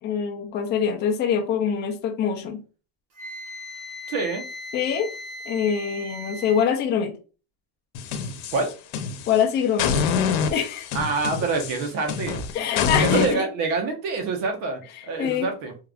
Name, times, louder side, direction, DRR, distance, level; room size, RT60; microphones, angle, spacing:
voice 1, 0.0-2.6 4.7-5.1 5.5-7.2 9.3-10.0 10.5-10.9 12.5-13.5 15.0-15.5, left 7 dB, 25° left, 0.4 m, -24 dB
Wind instrument woodwind instrument, 3.2-6.7, left 1 dB, 55° right, 1.1 m, -38 dB
voice 2, 4.1-4.4 8.5-8.7 10.9-12.4 13.0-15.7, right 4 dB, 85° right, 1.3 m, -26 dB
sound 1, 7.9-9.4 9.8-13.3, left 6 dB, 75° left, 0.8 m, -26 dB
3.5 x 2.3 x 3.4 m
cardioid pair, 160°, 47 cm